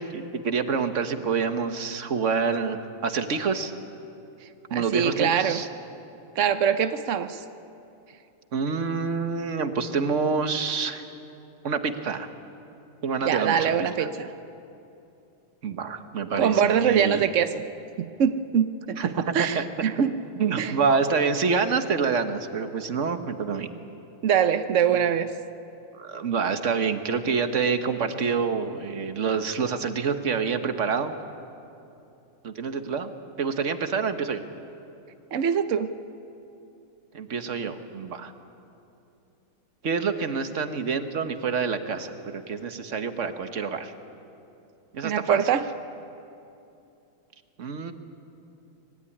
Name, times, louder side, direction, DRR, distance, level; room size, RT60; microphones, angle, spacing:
voice 1, 0.0-3.7 4.7-5.7 8.5-11.0 11.6-12.3 13.0-13.7 14.0-14.1 15.6-17.3 19.0-19.6 20.4-23.7 25.9-31.1 32.4-33.1 33.4-34.4 37.1-38.3 39.8-43.9 44.9-45.4 47.6-47.9, right 5 dB, 40° right, 8 dB, 1.3 m, -27 dB
voice 2, 4.7-5.6 6.4-7.4 13.2-14.3 16.4-17.6 18.0-19.0 19.3-20.1 20.6-20.7 24.2-25.3 35.3-35.9 45.0-45.7, right 8 dB, 80° right, 10 dB, 0.6 m, -23 dB
24.5 x 20.0 x 9.9 m, 2.8 s
omnidirectional pair, 2.4 m